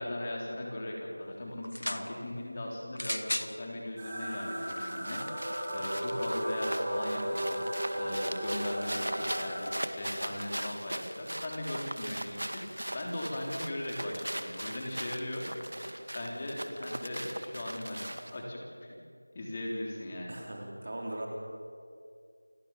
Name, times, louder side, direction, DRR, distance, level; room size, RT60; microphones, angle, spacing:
voice 1, 0.0-7.6 8.0-15.4 16.1-18.9 19.3-20.4, left 1 dB, 20° left, -1 dB, 3.5 m, -38 dB
sound 1, 1.6-2.1 2.9-3.5 4.4-4.5, left 1 dB, 80° left, 1.5 m, -34 dB
sound 2, 4.0-9.6, equal, 15° right, 5.6 m, -35 dB
sound 3, 4.3-18.4, right 1 dB, 75° right, 2.2 m, -40 dB
voice 2, 20.3-21.3, right 1 dB, 40° right, 0 dB, 4.8 m, -39 dB
28.5 x 18.0 x 7.2 m, 2.4 s
figure-of-eight pair, 175°, 0 cm